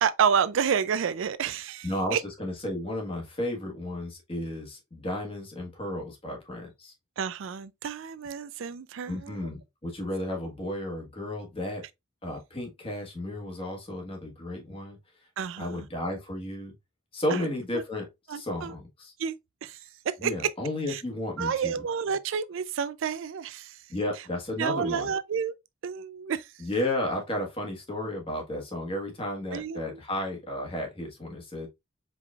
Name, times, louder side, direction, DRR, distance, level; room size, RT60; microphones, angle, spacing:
voice 1, 0.0-2.2 7.2-9.5 15.4-15.9 17.3-17.4 18.3-18.7 19.2-19.4 19.6-19.8 20.2-20.3 20.9-21.0 21.4-23.8 24.6-25.5 25.8-26.5 29.5-30.0, right 7 dB, 65° right, 0.4 m, -29 dB
voice 2, 1.8-6.9 9.1-11.8 12.2-15.0 15.6-16.7 17.1-18.1 18.3-19.1 20.2-21.8 23.9-25.1 26.6-31.7, left 1 dB, 25° left, 1.4 m, -33 dB
4.8 x 3.8 x 2.4 m
head